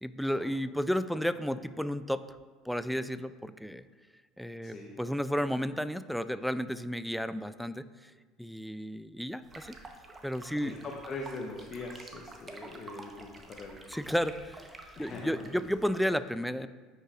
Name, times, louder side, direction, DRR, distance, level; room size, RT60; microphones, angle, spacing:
voice 1, 0.0-2.2 2.6-3.9 4.4-8.1 8.4-9.8 10.2-10.7 13.9-16.7, equal, ahead, 13 dB, 0.3 m, -32 dB
voice 2, 4.6-5.0 10.6-13.8 15.0-15.6, left 3 dB, 40° left, 0 dB, 0.8 m, -42 dB
sound 1, 9.4-16.1, right 3 dB, 25° right, 0.9 m, -49 dB
9.7 x 5.4 x 2.4 m, 1.4 s
hypercardioid pair, 75°, 0 cm